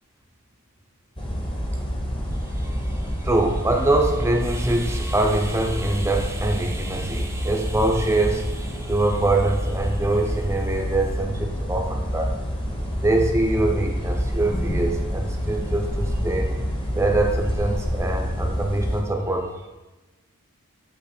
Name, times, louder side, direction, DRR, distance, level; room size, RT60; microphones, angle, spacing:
sound 1, 1.2-19.0, equal, 25° left, 0.9 m, -27 dB
voice 1, 2.2-12.3 12.9-16.6 16.9-19.7, right 2 dB, 10° right, 2 dB, 0.6 m, -24 dB
8.6 x 3.0 x 4.9 m, 1.1 s
head